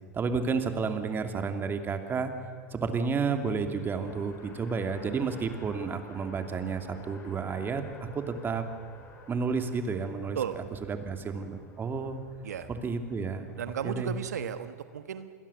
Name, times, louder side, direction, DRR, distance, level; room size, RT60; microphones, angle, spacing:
voice 1, 0.1-2.3 2.7-8.6 9.3-12.2 12.7-13.5 13.8-14.1, right 5 dB, 25° right, 7 dB, 2.8 m, -31 dB
Race car auto racing, 3.1-14.4, left 3 dB, 30° left, 5.8 m, -52 dB
voice 2, 13.6-15.3, right 9 dB, 80° right, 11 dB, 1.2 m, -34 dB
28.0 x 21.5 x 7.2 m, 2.2 s
hypercardioid pair, 100°, 9 cm